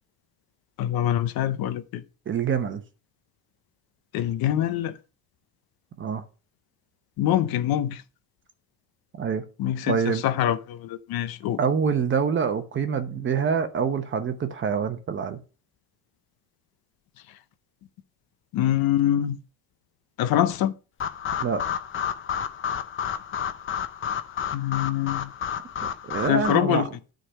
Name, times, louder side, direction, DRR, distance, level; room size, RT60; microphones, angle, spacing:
voice 1, 0.8-2.0 4.1-5.0 7.2-8.0 9.6-11.6 18.5-19.4 20.2-20.7 24.5-25.3 26.2-26.9, left 11 dB, 60° left, 0.8 m, -24 dB
voice 2, 2.3-2.8 6.0-6.2 9.2-9.4 9.9-10.2 11.6-15.4 21.4-21.6 25.8-26.8, right 6 dB, 30° right, 0.9 m, -26 dB
sound 1, 21.0-26.5, left 8 dB, 30° left, 0.6 m, -31 dB
9.8 x 3.9 x 5.5 m
cardioid pair, 145°, 42 cm